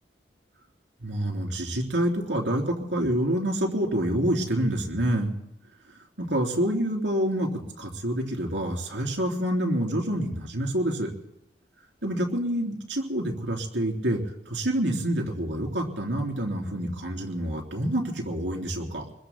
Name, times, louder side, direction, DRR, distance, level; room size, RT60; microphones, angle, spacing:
voice 1, 1.0-5.3 6.2-11.1 12.0-14.2 14.5-19.1, right 1 dB, 85° right, 0 dB, 3.3 m, -27 dB
29.0 x 22.0 x 2.2 m, 0.83 s
head